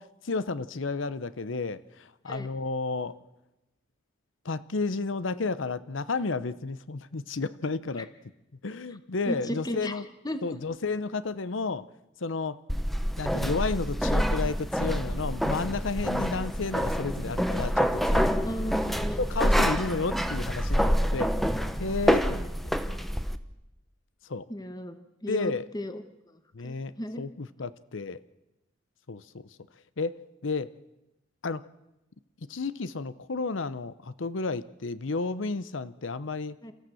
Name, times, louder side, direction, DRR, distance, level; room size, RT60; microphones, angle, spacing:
voice 1, 0.0-3.2 4.4-8.1 8.6-10.1 10.4-11.9 12.2-12.6 13.2-18.7 19.2-21.3 21.8-22.5 24.2-24.5 25.3-25.7 26.5-28.2 29.1-29.5 30.0-30.7 31.4-31.6 32.5-36.6, left 3 dB, 80° left, 15 dB, 0.8 m, -32 dB
voice 2, 9.3-10.0 10.2-10.4 18.4-19.2 24.5-25.0 25.2-26.0 26.6-27.2 36.6-36.7, equal, 20° left, 9 dB, 1.2 m, -34 dB
sound 1, 12.7-23.4, equal, ahead, 0.9 m, -27 dB
29.5 x 14.5 x 7.7 m, 0.96 s
head